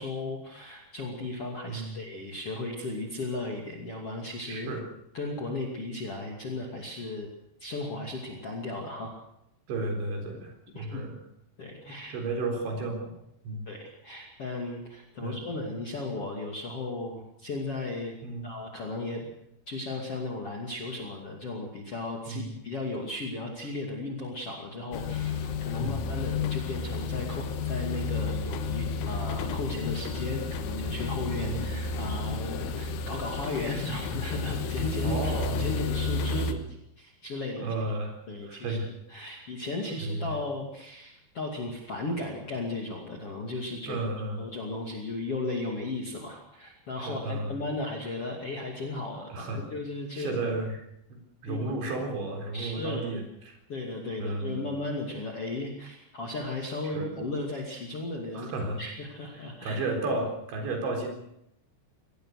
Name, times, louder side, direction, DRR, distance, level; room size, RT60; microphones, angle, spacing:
voice 1, 0.0-4.7 5.1-7.3 7.6-9.1 10.7-11.1 11.6-12.1 13.7-18.2 18.4-19.3 19.7-37.7 38.3-38.8 39.1-44.0 44.4-50.4 51.5-51.8 52.5-53.2 53.7-59.8, left 2 dB, 40° left, 0 dB, 2.8 m, -35 dB
voice 2, 1.7-2.0 4.5-4.8 9.7-11.2 12.1-13.1 13.4-13.7 15.2-15.4 18.2-18.5 22.3-22.5 25.7-26.0 31.4-31.7 35.0-35.7 37.6-38.2 38.5-38.9 39.2-39.3 40.0-40.3 43.9-44.4 47.0-47.5 49.3-49.6 50.2-50.8 51.1-53.6 54.2-54.7 56.9-57.1 58.3-58.8 59.4-61.1, right 2 dB, 70° right, 3 dB, 6.4 m, -33 dB
sound 1, 24.9-36.5, left 4 dB, 90° left, 3.8 m, -31 dB
23.0 x 19.5 x 6.6 m, 0.78 s
omnidirectional pair, 5.4 m